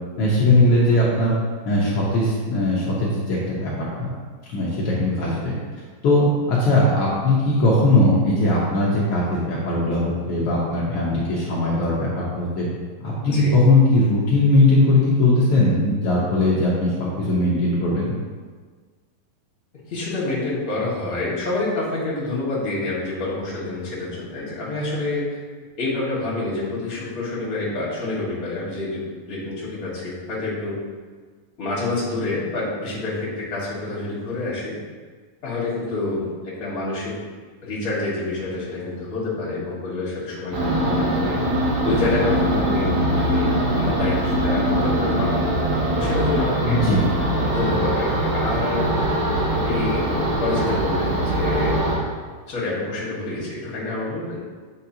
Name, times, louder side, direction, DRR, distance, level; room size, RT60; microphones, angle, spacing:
voice 1, 0.2-1.3 1.6-3.7 4.0-4.1 4.5-5.5 6.0-12.7 13.0-18.1 46.6-47.1, left 2 dB, 80° left, -6 dB, 1.2 m, -19 dB
voice 2, 19.9-25.4 25.8-30.8 31.6-34.8 35.4-37.2 37.6-41.4 41.8-46.8 47.5-48.9 49.5-50.1 50.4-51.8 52.5-54.4, left 2 dB, 35° left, -7 dB, 1.5 m, -27 dB
sound 1, 40.5-52.0, right 1 dB, 60° right, 2.4 m, -22 dB
8.1 x 5.1 x 2.8 m, 1.5 s
omnidirectional pair, 4.0 m